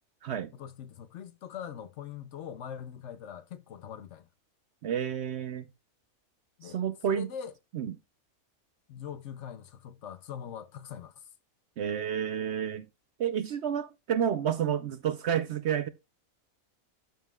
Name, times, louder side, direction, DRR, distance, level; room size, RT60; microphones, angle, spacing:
voice 1, 0.5-4.3 6.6-7.5 8.9-11.3, left 8 dB, 65° left, 0.8 m, -42 dB
voice 2, 4.8-5.7 6.6-7.3 7.7-7.9 11.8-12.9 13.2-15.9, right 9 dB, 65° right, 0.7 m, -30 dB
13.0 x 5.4 x 2.3 m
omnidirectional pair, 1.5 m